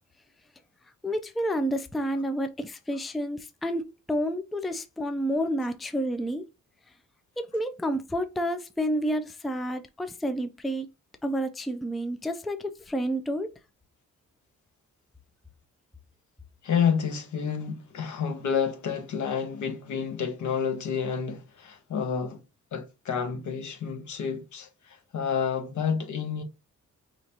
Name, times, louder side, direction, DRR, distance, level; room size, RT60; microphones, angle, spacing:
voice 1, 1.0-6.5 7.4-10.9 11.2-13.5, equal, ahead, 0.3 m, -30 dB
voice 2, 16.6-22.4 22.7-26.4, left 7 dB, 80° left, 1.2 m, -29 dB
5.1 x 3.0 x 2.8 m
wide cardioid pair, 155°, 29 cm